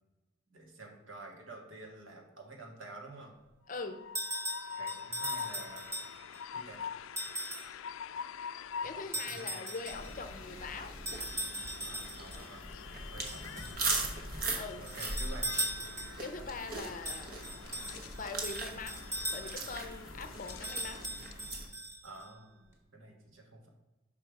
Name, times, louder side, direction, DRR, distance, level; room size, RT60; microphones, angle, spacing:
voice 1, 0.5-3.3 4.8-5.9 6.5-6.8 8.8-8.9 9.2-9.7 11.8-12.8 13.1-14.3 14.8-15.5 22.0-23.7, right 2 dB, 80° right, 2 dB, 1.5 m, -50 dB
Train, 3.7-21.5, left 7 dB, 85° left, 0.3 m, -46 dB
voice 2, 3.7-4.0 8.8-11.0 14.5-14.8 16.2-17.3 18.1-19.0 19.3-21.0, left 4 dB, 40° left, 8 dB, 0.6 m, -42 dB
sound 1, 4.2-6.4 7.2-7.8 9.1-10.1 11.1-12.4 13.3-14.1 14.9-16.3 17.1-19.8 20.5-22.2, right 1 dB, 15° right, 1.1 m, -39 dB
sound 2, 9.8-21.7, right 3 dB, 45° right, 1.0 m, -40 dB
5.7 x 5.1 x 4.6 m, 1.1 s
head